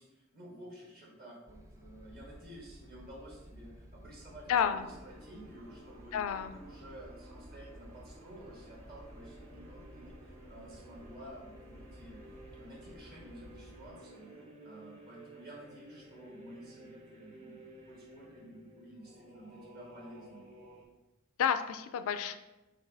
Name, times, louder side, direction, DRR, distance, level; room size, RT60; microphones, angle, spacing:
voice 1, 0.0-6.2 6.5-12.2 12.5-14.3 14.6-17.6 17.9-20.5, right 1 dB, 45° right, -4 dB, 1.4 m, -52 dB
sound 1, 1.5-13.9, equal, 15° right, 0.3 m, -54 dB
sound 2, 4.4-20.9, right 1 dB, 30° right, 0.8 m, -56 dB
voice 2, 4.5-4.9 6.1-6.5 21.4-22.4, left 8 dB, 65° left, 11 dB, 0.3 m, -30 dB
sound 3, 4.5-14.5, equal, 80° right, 0.6 m, -59 dB
5.6 x 2.6 x 3.4 m, 1.0 s
head